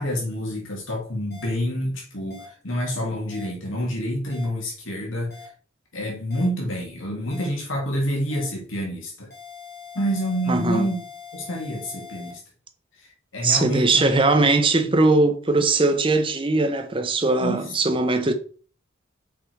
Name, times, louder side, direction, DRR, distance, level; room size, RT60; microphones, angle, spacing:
voice 1, 0.0-5.4 5.9-9.3 9.9-11.1 11.3-12.4 13.0-14.5 14.8-15.0 17.4-18.0, equal, 85° left, 2.4 m, -28 dB
sound 1, 1.3-1.5 2.3-2.5 3.3-3.5 4.3-4.5 5.3-5.5 6.3-6.5 7.3-7.5 8.3-8.5 9.3-12.3, left 6 dB, 50° left, 2.3 m, -42 dB
voice 2, 10.5-10.9 13.4-18.3, right 3 dB, 25° right, 0.9 m, -20 dB
5.9 x 5.0 x 4.7 m
head